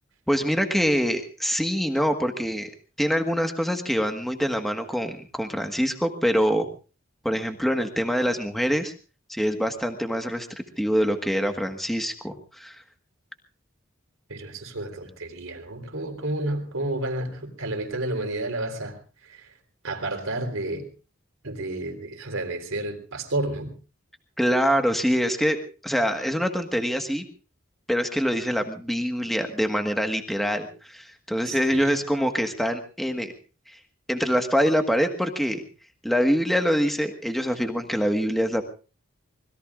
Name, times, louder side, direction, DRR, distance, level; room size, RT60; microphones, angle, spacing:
voice 1, 0.3-2.7 3.0-6.7 7.2-8.9 9.3-10.5 10.8-12.8 24.4-25.6 25.8-27.2 27.9-33.3 33.7-33.8 34.1-35.6 36.0-38.6, equal, ahead, 5 dB, 1.5 m, -25 dB
voice 2, 14.3-19.5 19.8-20.9 21.4-23.7 31.5-32.0, right 2 dB, 85° right, 5 dB, 3.9 m, -31 dB
26.0 x 21.0 x 2.5 m, 0.35 s
head